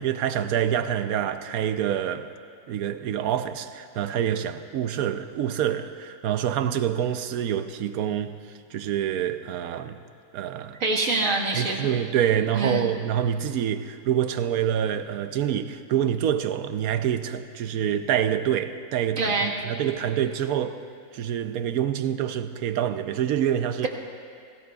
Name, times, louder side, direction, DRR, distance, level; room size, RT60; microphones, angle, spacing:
voice 1, 0.0-2.3 2.7-8.4 8.7-10.0 10.3-10.8 11.5-19.3 19.6-20.8 21.1-23.9, right 9 dB, 80° right, 1.1 m, -26 dB
voice 2, 10.8-12.0 12.5-12.9 19.2-19.5, right 2 dB, 60° right, 1.9 m, -25 dB
29.0 x 18.5 x 2.3 m
omnidirectional pair, 1.5 m